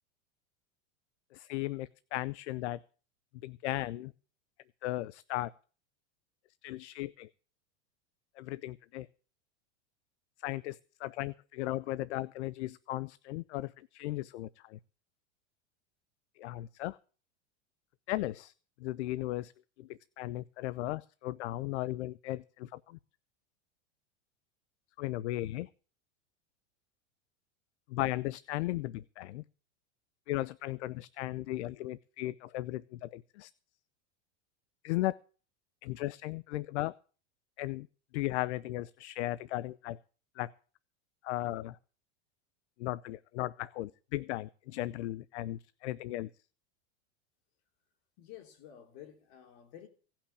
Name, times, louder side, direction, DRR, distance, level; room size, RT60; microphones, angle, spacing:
voice 1, 1.3-2.8 3.4-4.1 4.8-5.5 6.6-7.3 8.4-9.1 10.4-14.8 16.4-17.0 18.1-18.5 18.8-19.5 19.8-23.0 25.0-25.7 27.9-29.4 30.3-33.5 34.8-35.2 35.8-36.9 37.6-37.9 38.1-40.0 40.4-40.5 41.2-41.8 42.8-46.3, left 16 dB, 75° left, 0.6 m, -36 dB
voice 2, 48.2-49.9, left 11 dB, 60° left, 3.4 m, -51 dB
17.5 x 5.9 x 8.4 m
supercardioid pair, 120°, 34 cm